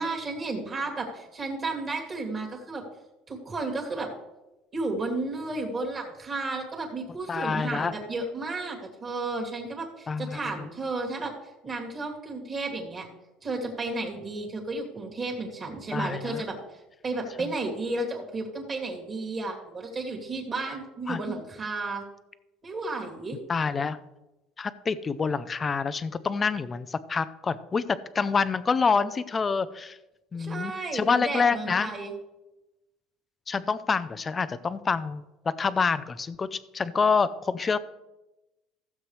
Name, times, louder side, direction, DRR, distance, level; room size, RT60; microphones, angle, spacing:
voice 1, 0.0-2.8 3.3-4.1 4.7-11.3 11.6-13.1 13.4-22.0 22.6-23.4 30.4-32.1, right 3 dB, 25° right, 0 dB, 2.6 m, -33 dB
voice 2, 7.3-7.9 10.1-10.7 15.9-16.4 17.4-17.5 21.1-21.2 23.5-24.0 24.6-30.0 30.3-31.9 33.5-37.8, left 5 dB, 20° left, 15 dB, 0.5 m, -27 dB
15.5 x 7.7 x 3.3 m, 0.97 s
cardioid pair, 145°, 0 cm